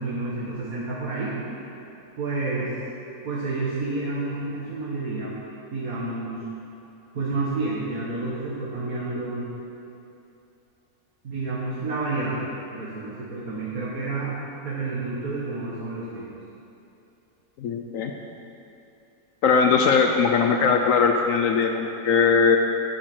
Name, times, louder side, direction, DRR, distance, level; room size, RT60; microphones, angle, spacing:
voice 1, 0.0-1.4 2.2-2.7 3.2-5.3 5.7-6.5 7.1-9.5 11.2-12.4 12.7-16.3, right 3 dB, 65° right, -7 dB, 2.1 m, -29 dB
voice 2, 17.6-18.1 19.4-22.6, left 5 dB, 65° left, 4 dB, 1.0 m, -20 dB
9.9 x 9.2 x 6.2 m, 2.8 s
omnidirectional pair, 1.6 m